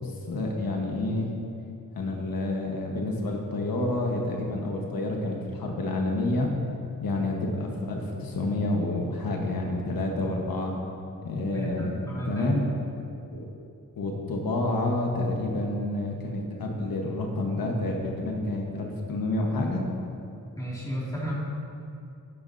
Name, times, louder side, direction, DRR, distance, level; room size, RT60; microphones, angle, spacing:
voice 1, 0.0-1.3 1.9-6.5 7.0-10.8 11.2-12.6 13.3-13.4 14.0-19.8, left 2 dB, 85° left, 0 dB, 1.2 m, -29 dB
voice 2, 11.5-12.5 20.5-21.3, right 1 dB, 10° left, -6 dB, 2.3 m, -34 dB
11.0 x 10.5 x 2.7 m, 2.7 s
wide cardioid pair, 125°, 34 cm